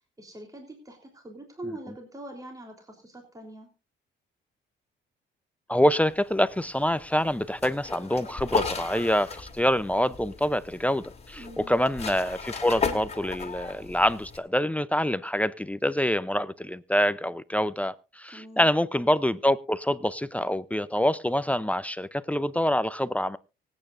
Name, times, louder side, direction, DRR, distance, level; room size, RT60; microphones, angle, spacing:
voice 1, 0.2-3.7 11.4-11.7 18.3-18.7, right 1 dB, 15° right, 3.5 m, -43 dB
voice 2, 5.7-23.4, equal, 5° left, 0.6 m, -26 dB
sound 1, 6.1-14.4, left 5 dB, 30° left, 2.5 m, -35 dB
24.5 x 8.9 x 2.6 m
cardioid pair, 90°, 20 cm